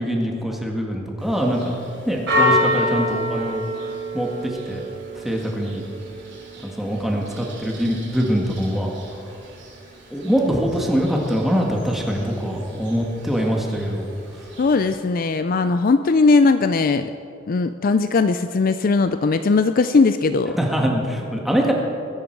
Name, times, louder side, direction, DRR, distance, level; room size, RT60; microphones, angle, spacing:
voice 1, 0.0-1.8 2.1-3.7 4.1-4.8 5.1-5.8 6.6-8.9 10.1-14.1 20.5-21.7, equal, ahead, -1 dB, 1.8 m, -23 dB
Church bell, 1.2-15.0, left 1 dB, 65° right, 3.6 m, -29 dB
voice 2, 14.6-17.1 17.5-20.6, left 4 dB, 45° left, 10 dB, 0.4 m, -18 dB
21.0 x 10.5 x 4.7 m, 2.8 s
head